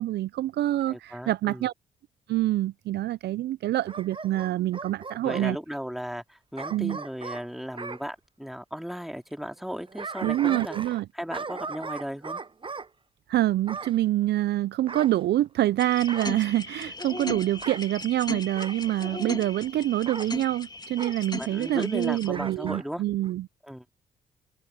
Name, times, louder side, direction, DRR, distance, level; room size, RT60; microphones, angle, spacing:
voice 1, 0.0-1.7 2.3-5.6 6.7-7.0 10.2-11.1 13.3-23.5, right 14 dB, 65° right, 0.5 m, -26 dB
voice 2, 0.9-1.7 5.2-10.8 11.1-12.4 21.4-23.0 23.6-23.8, equal, ahead, 3.2 m, -36 dB
Bark / Growling, 3.9-5.5 6.6-8.0 9.6-11.0 11.3-12.9 13.7-14.0 14.9-15.7 16.1-16.4 17.5-17.8 18.6-18.8 20.1-20.3 21.0-21.2 22.3-22.9 23.2-23.3, right 4 dB, 30° right, 0.9 m, -38 dB
sound 1, 15.8-22.3, left 2 dB, 25° left, 2.7 m, -37 dB
open air
hypercardioid pair, 45°, 18 cm